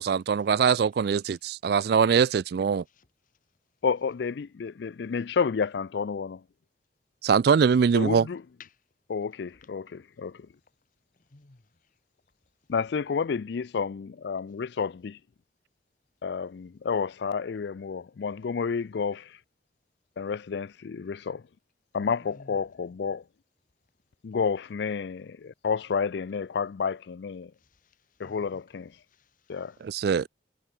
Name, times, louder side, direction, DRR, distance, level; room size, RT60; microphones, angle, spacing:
voice 1, 0.0-2.8 7.2-8.3 29.8-30.3, right 6 dB, 55° right, 0.3 m, -22 dB
voice 2, 3.8-6.4 7.9-8.4 9.1-10.5 12.7-15.2 16.2-19.4 20.2-21.4 21.9-23.2 24.2-27.5 28.2-28.9 29.5-29.7, left 5 dB, 60° left, 0.4 m, -30 dB
voice 3, 11.3-11.6 22.2-22.6 27.6-28.8 29.1-29.5, left 3 dB, 45° left, 1.1 m, -54 dB
head